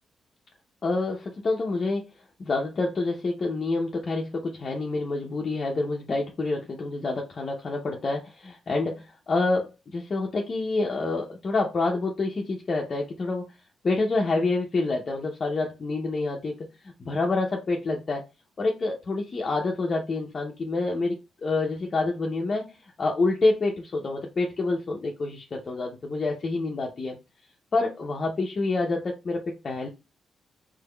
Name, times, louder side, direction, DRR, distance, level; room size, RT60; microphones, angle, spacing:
voice 1, 0.8-2.1 2.4-13.5 13.8-18.2 18.6-27.2 27.7-29.9, left 3 dB, 45° left, -1 dB, 0.7 m, -27 dB
3.5 x 3.4 x 2.3 m, 0.26 s
supercardioid pair, 65°, 0 cm